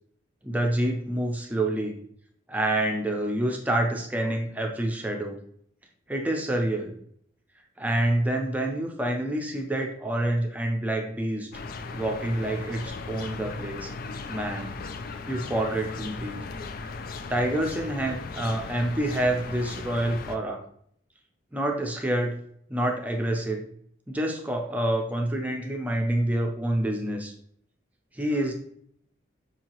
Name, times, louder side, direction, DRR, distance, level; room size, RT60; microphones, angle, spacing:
voice 1, 0.4-1.9 2.5-5.4 6.1-6.9 7.8-11.5 11.9-13.9 14.3-14.7 15.3-16.4 17.3-20.6 21.5-22.4 22.7-23.6 24.1-27.3 28.2-28.5, right 1 dB, 10° right, 2 dB, 0.5 m, -27 dB
sound 1, 11.5-20.4, left 4 dB, 50° left, 0.3 m, -37 dB
5.4 x 2.8 x 2.9 m, 0.66 s
head